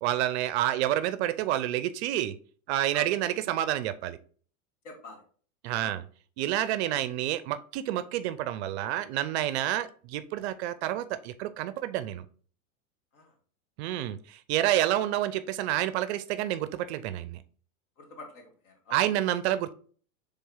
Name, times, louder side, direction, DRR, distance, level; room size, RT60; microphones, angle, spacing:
voice 1, 0.0-2.3 2.7-4.2 5.6-6.0 6.4-12.2 13.8-17.4 18.9-19.7, right 13 dB, 55° right, 14 dB, 0.4 m, -29 dB
voice 2, 4.8-5.2 5.8-6.0 13.1-13.3 18.0-19.3, left 2 dB, 55° left, 3 dB, 1.6 m, -47 dB
4.1 x 3.4 x 3.7 m, 0.44 s
hypercardioid pair, 125°, 41 cm